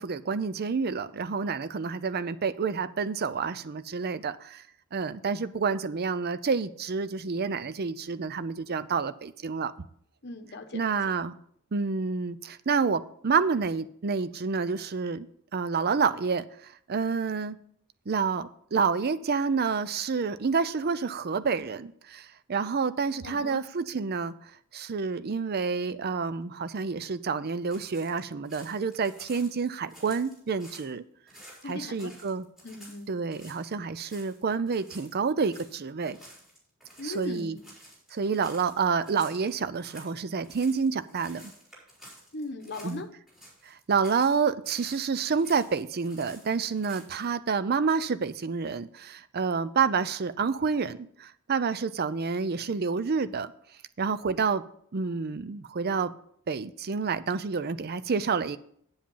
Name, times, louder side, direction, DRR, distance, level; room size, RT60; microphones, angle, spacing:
voice 1, 0.0-4.6 4.9-9.7 10.7-11.4 11.7-15.3 15.5-17.6 18.1-31.0 31.6-32.5 33.1-36.2 37.0-37.6 38.1-41.5 42.8-43.0 43.6-53.5 54.0-54.6 54.9-56.1 56.5-58.6, right 5 dB, 45° right, 14 dB, 0.5 m, -29 dB
voice 2, 10.2-11.0 23.2-23.6 31.6-32.1 32.6-33.1 37.0-37.6 42.3-43.1, left 2 dB, 50° left, 7 dB, 1.0 m, -38 dB
sound 1, 27.7-30.9 31.3-33.7 34.0-34.4 34.7-43.0 43.3-44.4 44.6-47.2, equal, ahead, 4.7 m, -52 dB
8.8 x 7.6 x 5.5 m, 0.64 s
head